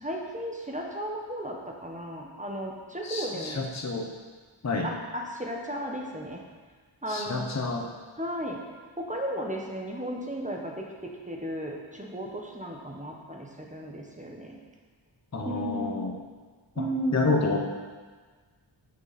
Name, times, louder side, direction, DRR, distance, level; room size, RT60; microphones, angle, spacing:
voice 1, 0.0-3.6 4.8-6.4 7.0-7.5 8.2-8.6 9.0-14.6 15.4-16.1 16.7-17.3, equal, 15° right, -1 dB, 1.1 m, -34 dB
voice 2, 3.0-4.1 4.6-4.9 7.1-7.9 15.3-16.1 16.8-16.9 17.1-17.6, left 3 dB, 35° left, 1 dB, 0.9 m, -29 dB
8.7 x 6.6 x 4.2 m, 1.5 s
wide cardioid pair, 85°, 49 cm